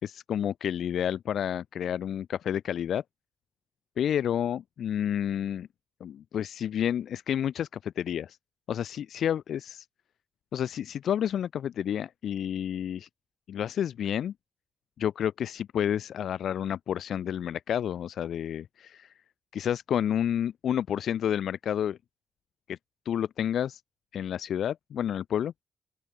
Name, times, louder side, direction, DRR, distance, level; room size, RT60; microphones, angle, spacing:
voice 1, 0.0-3.0 4.0-5.7 6.0-8.4 8.7-9.9 10.5-13.1 13.5-14.3 15.0-19.1 19.5-22.0 22.7-22.8 23.1-23.8 24.1-25.5, left 9 dB, 80° left, 5.3 m, -30 dB
open air
cardioid pair, 100°, 0 cm